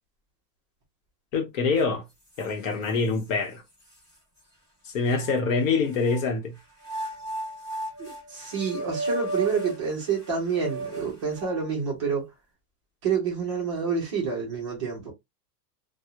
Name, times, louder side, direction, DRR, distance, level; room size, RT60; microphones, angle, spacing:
voice 1, 1.3-2.0 2.4-3.6 4.9-6.5, left 4 dB, 55° left, 0.8 m, -25 dB
sound 1, 1.8-1.9 2.3-3.3 3.9-4.0 5.1-6.2 6.8-11.7, right 2 dB, 10° left, 1.0 m, -35 dB
voice 2, 8.0-12.3 13.0-15.1, right 6 dB, 20° right, 0.4 m, -28 dB
2.3 x 2.0 x 2.7 m
supercardioid pair, 180°, 47 cm